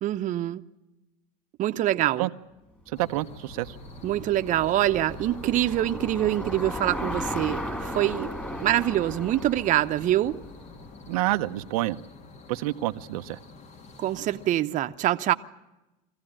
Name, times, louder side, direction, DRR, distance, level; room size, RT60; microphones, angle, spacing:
voice 1, 0.0-0.6 1.6-2.3 4.0-8.3 8.6-10.4 14.0-15.3, right 13 dB, 45° right, 0.9 m, -25 dB
sound 1, 2.9-14.5, left 3 dB, 40° left, 1.8 m, -47 dB
voice 2, 2.9-3.8 11.1-12.0 12.5-13.4, right 17 dB, 85° right, 0.8 m, -28 dB
Bicycle, 3.0-11.3, equal, 10° left, 2.8 m, -36 dB
23.0 x 15.5 x 8.9 m
supercardioid pair, 115°, 18 cm